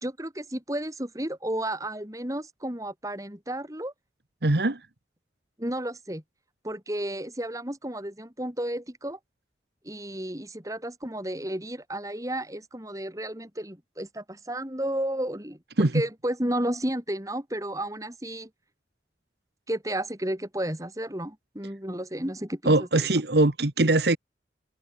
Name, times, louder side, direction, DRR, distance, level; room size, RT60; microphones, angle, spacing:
voice 1, 0.0-3.9 5.6-6.2 6.6-9.2 9.8-18.5 19.7-23.1, right 1 dB, 20° right, 4.0 m, -32 dB
voice 2, 4.4-4.8 15.8-15.9 22.6-24.2, right 2 dB, 70° right, 1.5 m, -21 dB
head